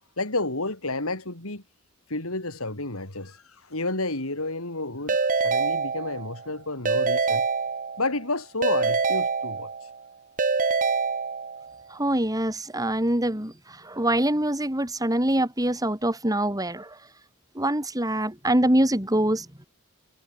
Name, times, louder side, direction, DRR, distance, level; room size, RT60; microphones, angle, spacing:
voice 1, 0.2-1.6 2.1-7.4 8.0-9.9, left 2 dB, 75° left, 4.8 m, -31 dB
Keyboard (musical) / Ringtone, 5.1-6.4 6.8-8.2 8.6-10.0 10.4-11.7, right 4 dB, 40° right, 1.4 m, -25 dB
voice 2, 11.9-17.0 17.5-19.5, right 1 dB, 15° right, 4.0 m, -24 dB
head